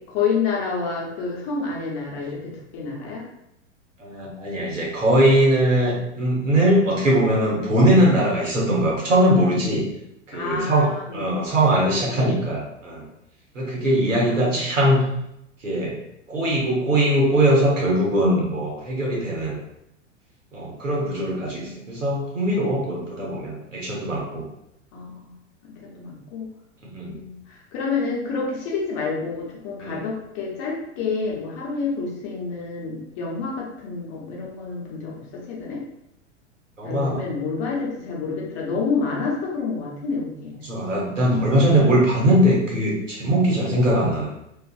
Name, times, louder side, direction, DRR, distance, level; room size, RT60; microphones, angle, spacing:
voice 1, 0.1-3.3 10.3-12.3 14.2-14.9 21.0-22.0 24.9-25.3 25.6-26.5 27.1-35.8 36.8-40.7 41.3-41.4, left 4 dB, 40° left, -3 dB, 0.8 m, -29 dB
voice 2, 4.0-9.8 10.3-13.1 13.5-15.0 15.6-16.0 16.3-19.6 20.5-24.4 26.8-27.2 29.8-30.0 36.8-37.2 40.6-44.3, right 1 dB, 85° right, -4 dB, 1.0 m, -21 dB
2.5 x 2.4 x 2.4 m, 0.81 s
figure-of-eight pair, 95°, 37 cm